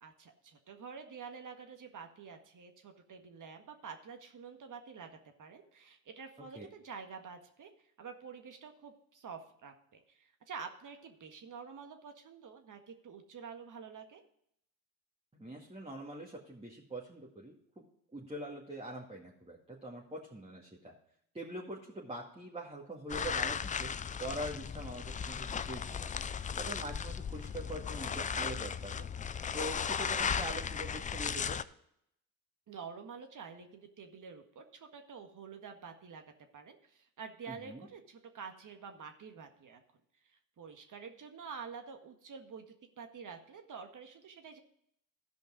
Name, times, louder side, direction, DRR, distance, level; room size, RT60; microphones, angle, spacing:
voice 1, 0.0-7.7 8.0-14.2 32.7-36.2 36.5-39.8 40.3-44.6, right 6 dB, 45° right, 5 dB, 1.6 m, -48 dB
voice 2, 15.3-17.8 18.1-20.9 21.3-23.9 24.2-26.1 26.6-29.1 29.5-31.6 37.5-37.9, right 1 dB, 15° right, -3 dB, 2.0 m, -43 dB
sound 1, 23.1-31.6, left 7 dB, 20° left, 0.4 m, -36 dB
13.5 x 5.2 x 5.0 m, 0.72 s
hypercardioid pair, 55°, 45 cm